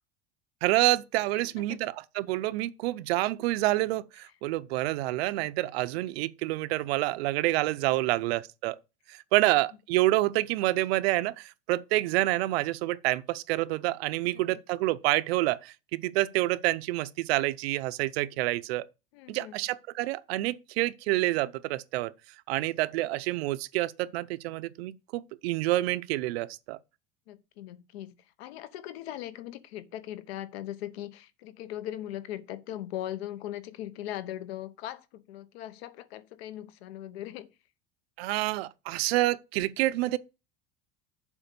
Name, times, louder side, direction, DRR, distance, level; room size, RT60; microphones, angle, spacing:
voice 1, 0.6-8.8 9.1-18.9 19.3-22.1 22.5-26.8 38.2-40.2, right 18 dB, 85° right, 0.7 m, -28 dB
voice 2, 1.4-1.8 8.0-8.1 14.3-14.6 19.1-19.5 27.3-37.5, left 12 dB, 90° left, 1.0 m, -40 dB
7.3 x 5.0 x 6.6 m
cardioid pair, 170°, 30 cm